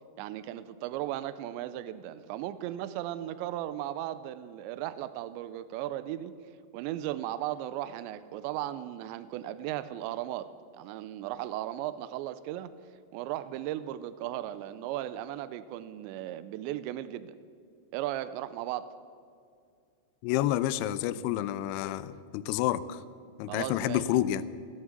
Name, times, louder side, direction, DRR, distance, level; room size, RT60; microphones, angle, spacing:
voice 1, 0.2-6.3 6.7-12.7 13.1-17.4 17.9-19.0 23.5-24.1, right 13 dB, 85° right, 14 dB, 2.8 m, -36 dB
voice 2, 20.2-23.0 23.4-24.4, left 13 dB, 85° left, 16 dB, 2.4 m, -29 dB
16.5 x 11.0 x 8.0 m, 2.3 s
omnidirectional pair, 5.2 m